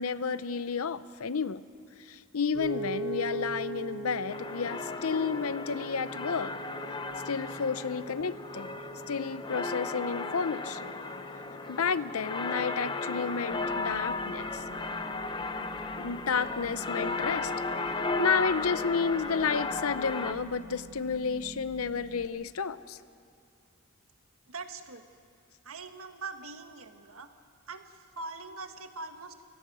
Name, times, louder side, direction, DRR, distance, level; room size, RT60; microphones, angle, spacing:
voice 1, 0.0-1.6 2.1-6.5 7.3-8.8 9.1-10.9 11.7-14.6 16.0-17.5 18.2-23.0, left 5 dB, 90° left, 14 dB, 0.7 m, -31 dB
Piano, 2.5-14.8, right 1 dB, 55° right, 7.6 m, -42 dB
sound 1, 4.3-20.3, left 3 dB, 20° left, 0.8 m, -35 dB
sound 2, 13.5-22.3, right 1 dB, 40° right, 1.3 m, -47 dB
voice 2, 24.5-25.0 25.6-27.3 27.7-29.4, right 3 dB, 85° right, 7 dB, 1.5 m, -42 dB
29.0 x 17.0 x 6.2 m, 2.5 s
head